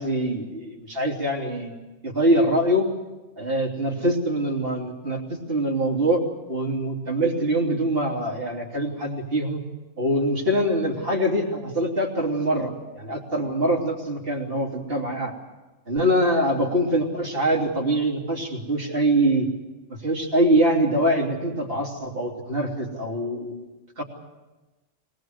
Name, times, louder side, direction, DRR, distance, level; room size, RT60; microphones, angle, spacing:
voice 1, 0.0-1.7 2.0-2.9 3.4-6.2 6.5-9.6 10.0-15.3 15.9-19.5 20.0-24.0, right 1 dB, 45° right, -1 dB, 3.4 m, -24 dB
23.5 x 19.5 x 7.9 m, 1.1 s
omnidirectional pair, 1.4 m